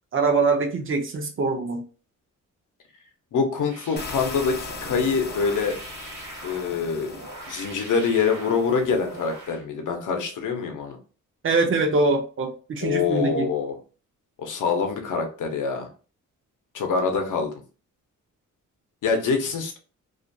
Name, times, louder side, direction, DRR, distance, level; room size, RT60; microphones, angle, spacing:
voice 1, 0.1-1.8 11.4-13.5, right 3 dB, 40° right, 4 dB, 0.5 m, -23 dB
voice 2, 3.3-5.8 6.4-7.1 7.5-11.0 12.8-13.7 14.4-15.9 16.7-17.5 19.0-19.8, left 5 dB, 70° left, 4 dB, 0.7 m, -25 dB
sound 1, 3.6-9.6, right 2 dB, 65° right, 1.1 m, -42 dB
sound 2, 4.0-9.5, left 4 dB, 30° left, 0.4 m, -40 dB
2.4 x 2.2 x 2.5 m, 0.36 s
wide cardioid pair, 160°, 32 cm